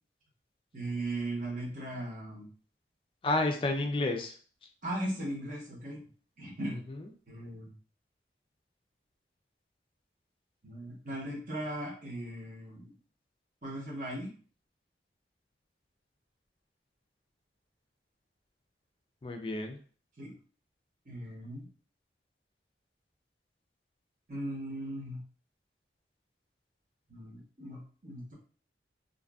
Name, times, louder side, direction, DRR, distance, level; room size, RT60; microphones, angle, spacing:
voice 1, 0.7-2.5 4.8-6.0 6.4-6.8 7.3-7.7 10.6-12.9 13.6-14.3 20.2-20.3 21.1-21.7 24.3-25.2 27.1-28.3, right 1 dB, 45° right, -3 dB, 0.9 m, -38 dB
voice 2, 3.2-4.4 6.7-7.1 19.2-19.8, left 2 dB, 30° left, 4 dB, 0.4 m, -31 dB
2.5 x 2.5 x 2.3 m, 0.41 s
head